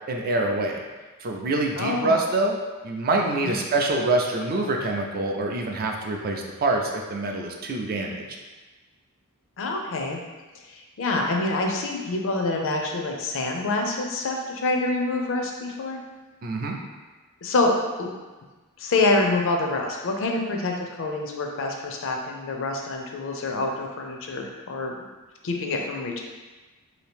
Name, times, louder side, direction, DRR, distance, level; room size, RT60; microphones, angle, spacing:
voice 1, 0.1-0.8 1.2-2.6 2.8-8.2 16.4-16.8, right 2 dB, 40° right, 1 dB, 0.4 m, -25 dB
voice 2, 1.8-2.1 3.4-3.6 9.6-10.2 11.0-16.0 17.4-17.7 18.0-18.1 18.8-24.9 25.4-26.2, left 2 dB, 60° left, 2 dB, 0.5 m, -26 dB
2.8 x 2.6 x 3.4 m, 1.2 s
head